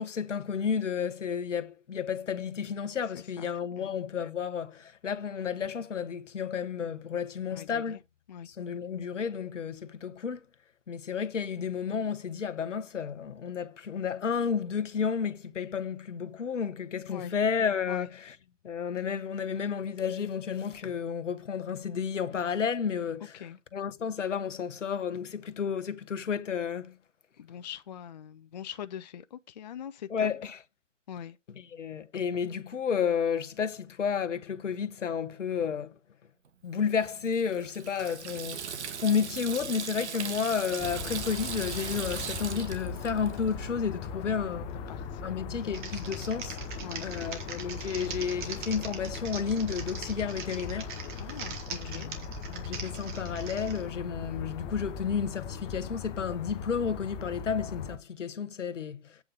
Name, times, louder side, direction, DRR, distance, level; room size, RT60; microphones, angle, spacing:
voice 1, 0.0-8.0 8.5-10.4 10.9-18.4 18.6-23.4 23.7-27.0 30.1-30.6 31.5-35.9 36.6-44.8 45.2-46.6 47.0-50.9 51.3-51.4 51.7-59.2, left 7 dB, 70° left, 1.2 m, -32 dB
voice 2, 7.5-8.0 8.3-8.5 17.1-17.3 17.9-18.1 23.3-23.6 27.4-30.3 31.1-31.4 44.9-45.8 46.8-47.4 51.2-52.1, left 9 dB, 35° left, 0.4 m, -42 dB
Water tap faucet / Sink (filling or washing), 36.9-43.7, right 7 dB, 60° right, 1.7 m, -39 dB
sound 1, 40.8-58.0, left 5 dB, 15° left, 0.8 m, -39 dB
Typing, 45.6-53.8, right 5 dB, 40° right, 2.8 m, -41 dB
8.8 x 5.2 x 5.8 m
hypercardioid pair, 140°, 38 cm